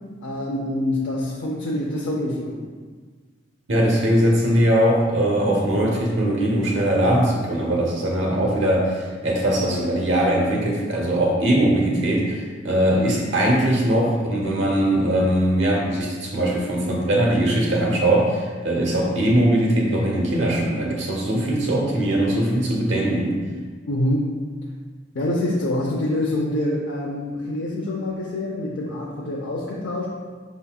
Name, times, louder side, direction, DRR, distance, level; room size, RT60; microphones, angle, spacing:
voice 1, 0.2-2.6 23.9-24.3 25.1-30.1, left 1 dB, 75° left, -4 dB, 0.6 m, -25 dB
voice 2, 3.7-23.4, right 1 dB, 80° right, -2 dB, 1.0 m, -21 dB
5.6 x 4.0 x 2.3 m, 1.5 s
head